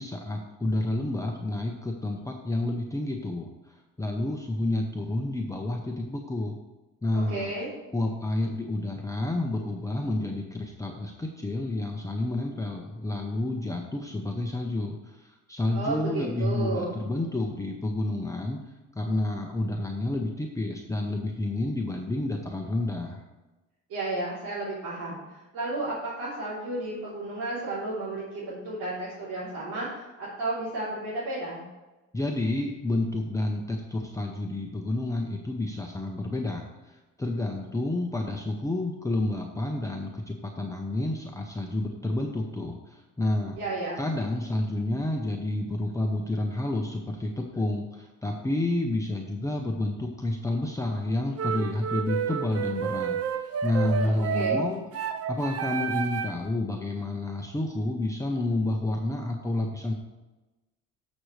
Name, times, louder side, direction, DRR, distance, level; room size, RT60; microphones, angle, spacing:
voice 1, 0.0-6.6 7.0-7.5 7.9-18.6 19.0-23.2 32.1-43.6 44.0-53.2 53.6-54.8 55.3-59.9, left 2 dB, 10° left, 1 dB, 0.8 m, -30 dB
voice 2, 7.1-7.7 15.7-17.0 23.9-31.6 43.6-44.0 53.9-54.7, right 2 dB, 85° right, -9 dB, 3.5 m, -33 dB
sound 1, 51.4-56.5, right 7 dB, 50° right, 0.7 m, -30 dB
13.5 x 6.3 x 3.3 m, 1.1 s
cardioid pair, 125°, 31 cm